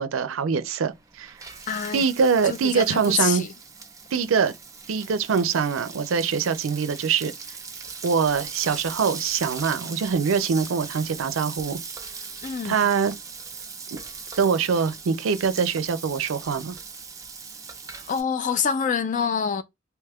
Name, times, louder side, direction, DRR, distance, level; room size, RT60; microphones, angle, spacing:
voice 1, 0.0-1.3 1.9-3.4 4.1-4.5 4.9-7.3 8.0-11.8 12.6-13.1 13.9-14.0 14.4-16.8, right 6 dB, 85° right, 0.4 m, -23 dB
Frying (food), 0.9-18.2, right 5 dB, 15° right, 0.6 m, -39 dB
voice 2, 1.7-2.0 2.4-3.5 12.4-12.8 18.1-19.6, left 6 dB, 40° left, 0.4 m, -26 dB
2.9 x 2.3 x 3.4 m
head